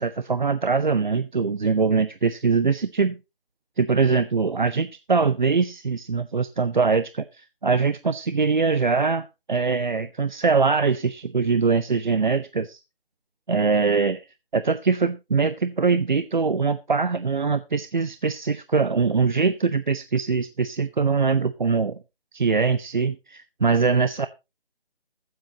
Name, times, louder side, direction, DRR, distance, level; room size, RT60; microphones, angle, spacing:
voice 1, 0.0-3.2 3.8-12.8 13.5-14.3 14.5-22.0 22.3-24.3, right 5 dB, 50° right, 13 dB, 0.7 m, -22 dB
22.5 x 7.8 x 2.8 m, 0.25 s
figure-of-eight pair, 170°, 31 cm